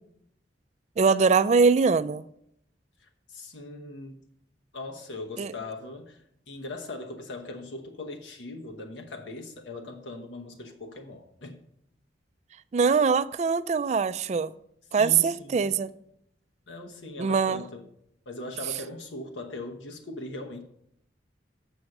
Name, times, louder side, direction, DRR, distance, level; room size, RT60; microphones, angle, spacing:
voice 1, 1.0-2.2 5.4-5.5 12.7-14.5 14.9-15.9 17.2-17.6, right 5 dB, 40° right, 0.3 m, -22 dB
voice 2, 3.0-4.2 4.7-11.6 14.9-15.8 16.7-17.8 18.3-20.6, left 2 dB, 90° left, 1.0 m, -40 dB
7.1 x 6.5 x 5.9 m
head